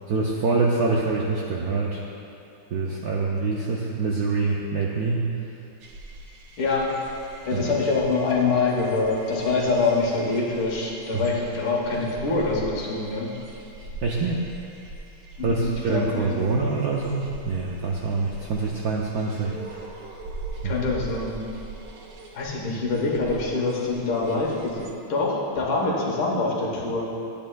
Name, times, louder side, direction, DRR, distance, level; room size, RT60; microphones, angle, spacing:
voice 1, 0.1-2.0 2.7-5.3 7.5-7.7 11.1-11.2 14.0-14.4 15.4-19.8 20.6-20.8, right 3 dB, 75° right, -2 dB, 0.8 m, -25 dB
sound 1, 5.8-24.9, right 2 dB, 60° right, 1.0 m, -42 dB
voice 2, 6.6-6.9 7.5-13.3 15.4-16.3 20.6-21.4 22.3-27.1, left 3 dB, 80° left, -3 dB, 2.1 m, -25 dB
11.0 x 8.7 x 2.3 m, 2.7 s
omnidirectional pair, 2.2 m